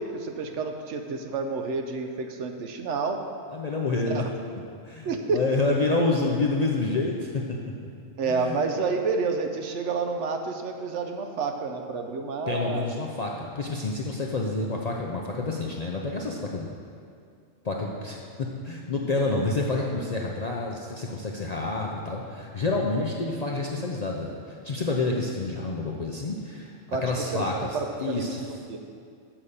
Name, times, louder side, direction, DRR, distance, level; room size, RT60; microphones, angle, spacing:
voice 1, 0.0-3.2 4.0-4.3 5.0-5.4 8.2-12.8 26.9-27.0 27.3-27.5 27.7-28.8, right 4 dB, 70° right, 5 dB, 1.0 m, -29 dB
voice 2, 3.5-4.2 4.8-7.6 8.2-8.6 12.5-16.7 17.6-28.4, left 3 dB, 45° left, -2 dB, 0.5 m, -28 dB
7.4 x 5.5 x 6.5 m, 2.3 s
omnidirectional pair, 1.4 m